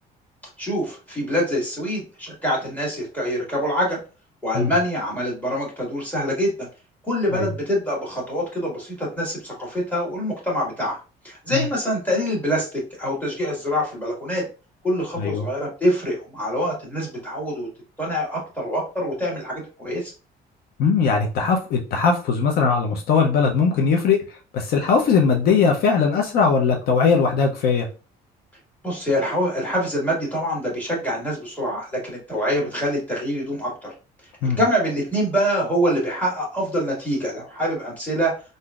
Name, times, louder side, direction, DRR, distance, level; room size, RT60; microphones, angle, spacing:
voice 1, 0.6-4.0 4.4-6.5 7.0-11.0 11.2-14.4 14.8-17.7 18.0-20.1 28.8-33.9 34.4-38.3, equal, 10° left, -3 dB, 1.6 m, -25 dB
voice 2, 20.8-24.2 24.5-27.9 34.4-34.6, left 5 dB, 65° left, 2 dB, 0.6 m, -19 dB
3.6 x 2.6 x 2.3 m, 0.33 s
cardioid pair, 110°, 17 cm